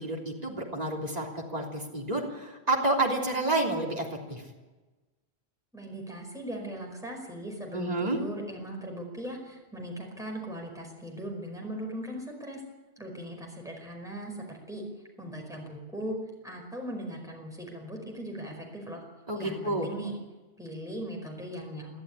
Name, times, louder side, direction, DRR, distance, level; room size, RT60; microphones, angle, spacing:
voice 1, 0.0-4.4 7.7-8.2 19.3-19.9, right 2 dB, 35° right, -1 dB, 3.5 m, -29 dB
voice 2, 5.7-12.6 13.0-14.8 15.2-16.2 16.4-19.0 19.3-20.2 20.6-22.0, right 1 dB, 5° right, 1 dB, 5.0 m, -39 dB
22.0 x 13.5 x 9.9 m, 1.2 s
omnidirectional pair, 1.1 m